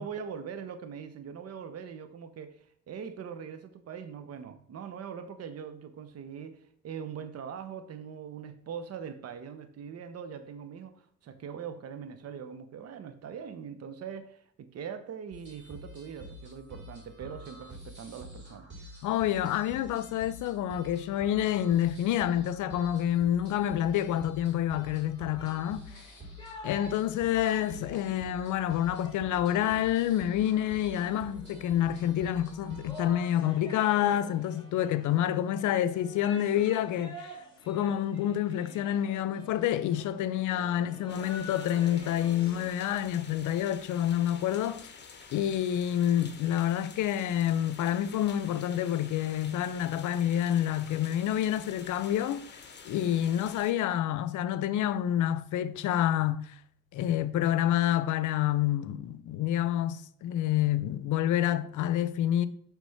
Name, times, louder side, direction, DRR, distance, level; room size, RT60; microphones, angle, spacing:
voice 1, 0.0-18.7, right 7 dB, 55° right, 0.8 m, -42 dB
sound 1, 15.3-33.1, equal, 35° right, 2.4 m, -48 dB
voice 2, 19.0-26.1 26.6-37.4 37.7-44.9 45.3-56.6 56.9-62.5, left 11 dB, 80° left, 0.6 m, -28 dB
sound 2, 25.3-42.7, left 2 dB, 15° left, 1.8 m, -48 dB
sound 3, 41.1-53.7, left 5 dB, 35° left, 1.0 m, -49 dB
6.1 x 3.4 x 5.7 m
cardioid pair, 90°, 30 cm